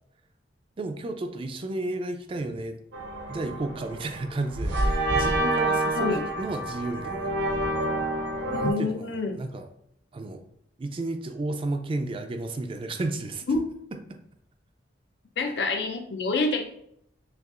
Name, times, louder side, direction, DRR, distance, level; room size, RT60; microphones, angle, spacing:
voice 1, 0.8-2.8 3.3-7.3 8.5-9.7 10.1-10.4 10.8-13.4 14.1-14.2, right 2 dB, 30° right, 7 dB, 0.3 m, -32 dB
sound 1, 2.9-8.7, right 1 dB, 85° right, 0.7 m, -28 dB
voice 2, 5.9-6.3 8.5-9.3 13.5-13.6 15.4-16.6, left 3 dB, 70° left, 4 dB, 0.5 m, -27 dB
6.5 x 2.4 x 2.4 m, 0.74 s
head